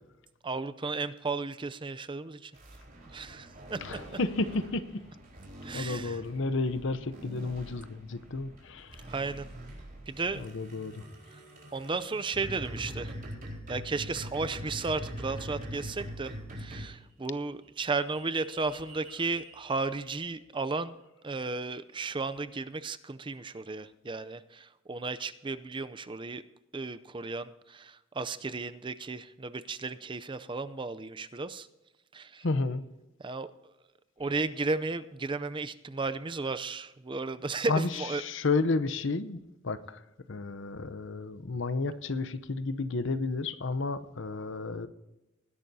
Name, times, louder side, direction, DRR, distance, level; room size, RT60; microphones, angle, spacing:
voice 1, 0.4-2.5 3.1-3.8 5.6-6.2 9.1-9.5 10.1-10.4 11.7-13.1 13.7-21.0 21.2-26.4 26.7-31.7 32.1-32.5 33.2-33.5 34.2-38.2, right 3 dB, 25° right, 13 dB, 0.5 m, -34 dB
sound 1, 2.5-17.0 17.6-20.0, equal, 45° right, 4.3 m, -44 dB
voice 2, 3.8-4.9 5.7-9.0 10.4-11.0 32.4-32.8 37.6-37.9 38.2-39.4 39.6-40.0 40.3-44.9, left 3 dB, 65° left, 13 dB, 0.8 m, -31 dB
20.0 x 11.5 x 2.8 m, 0.98 s
head